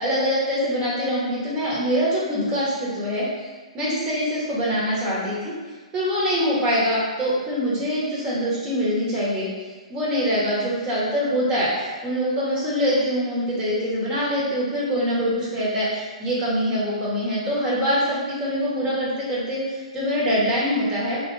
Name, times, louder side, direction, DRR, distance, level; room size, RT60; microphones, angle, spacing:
voice 1, 0.0-3.2 3.7-5.4 5.9-9.5 9.9-21.2, equal, 25° right, -7 dB, 1.1 m, -24 dB
2.3 x 2.2 x 3.2 m, 1.4 s
hypercardioid pair, 130°, 4 cm